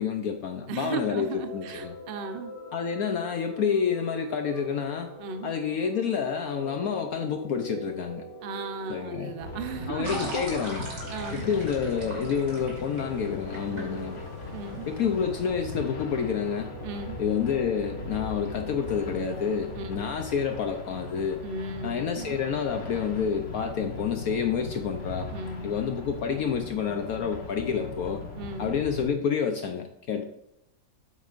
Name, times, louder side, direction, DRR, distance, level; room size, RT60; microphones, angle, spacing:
voice 1, 0.0-1.9 2.7-5.1 5.4-8.2 8.9-9.3 9.9-10.9 11.3-14.3 14.9-16.7 17.2-21.4 21.8-25.3 25.6-28.2 28.6-30.2, left 7 dB, 65° left, 5 dB, 0.9 m, -29 dB
voice 2, 0.7-2.5 5.2-5.5 8.4-10.4 11.1-11.5 13.7-14.0 14.5-14.9 16.8-17.2 19.7-20.1 21.4-22.4 25.3-25.7 28.4-28.8, right 4 dB, 65° right, 8 dB, 0.5 m, -36 dB
sound 1, 0.9-20.2, right 1 dB, 20° left, 2.7 m, -44 dB
sound 2, 9.4-29.1, left 3 dB, 40° left, 1.5 m, -39 dB
sound 3, 10.0-15.5, right 1 dB, 45° right, 2.5 m, -41 dB
8.7 x 8.0 x 2.5 m, 0.81 s
omnidirectional pair, 2.1 m